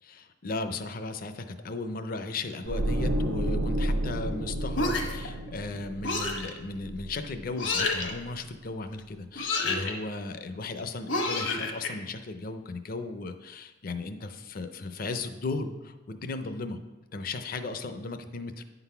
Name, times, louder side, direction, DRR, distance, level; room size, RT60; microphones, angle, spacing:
voice 1, 0.0-16.8 17.1-18.6, left 3 dB, 45° left, 9 dB, 0.5 m, -36 dB
sound 1, 2.7-7.7 8.0-8.3, right 1 dB, 70° right, 0.6 m, -31 dB
sound 2, 4.7-5.3 6.0-6.5 7.6-8.1 9.3-9.9 11.1-11.9, left 3 dB, 75° left, 1.2 m, -29 dB
9.5 x 4.0 x 5.6 m, 1.2 s
head